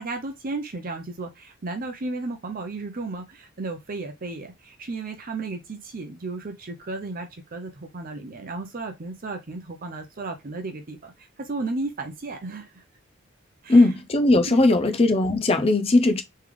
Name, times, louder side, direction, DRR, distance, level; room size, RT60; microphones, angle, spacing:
voice 1, 0.0-12.8 13.6-13.9 14.5-14.9, right 3 dB, 40° right, 0.6 m, -34 dB
voice 2, 13.7-16.2, left 2 dB, 25° left, 0.5 m, -18 dB
3.3 x 3.2 x 3.5 m
head